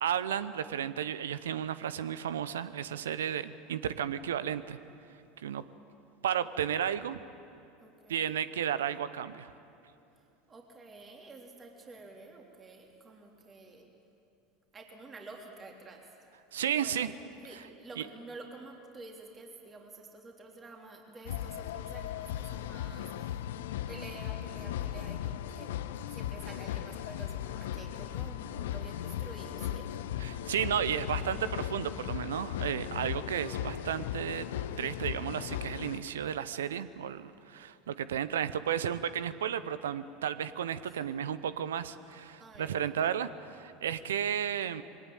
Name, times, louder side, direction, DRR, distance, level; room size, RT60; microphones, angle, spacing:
voice 1, 0.0-4.8 5.4-5.6 6.2-7.2 8.1-9.5 16.5-17.1 18.0-18.1 30.2-34.5 34.8-44.8, right 9 dB, 75° right, 15 dB, 0.7 m, -33 dB
voice 2, 7.8-8.3 10.5-13.9 14.7-16.1 16.8-17.2 17.4-23.5 23.9-25.7 26.1-29.9 40.8-41.0 42.4-42.9, right 2 dB, 25° right, 1 dB, 3.5 m, -49 dB
sound 1, 21.3-36.0, left 11 dB, 70° left, 0.6 m, -37 dB
22.0 x 18.0 x 9.2 m, 2.7 s
hypercardioid pair, 75°, 0 cm